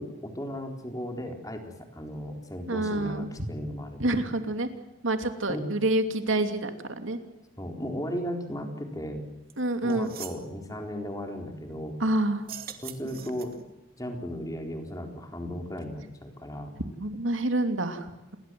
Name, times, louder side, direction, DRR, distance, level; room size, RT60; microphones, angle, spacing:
voice 1, 0.0-4.2 5.5-5.7 7.6-9.3 9.8-12.0 12.8-13.6 14.0-16.7, equal, 15° left, 4 dB, 4.1 m, -36 dB
voice 2, 2.7-3.3 4.0-4.7 5.0-7.2 9.6-10.1 12.0-12.5 17.0-18.1, right 1 dB, 70° right, 7 dB, 2.8 m, -27 dB
sound 1, 9.5-9.6 9.9-10.4 12.4-13.7, right 8 dB, 45° right, 2.4 m, -42 dB
29.0 x 21.5 x 7.7 m, 0.97 s
head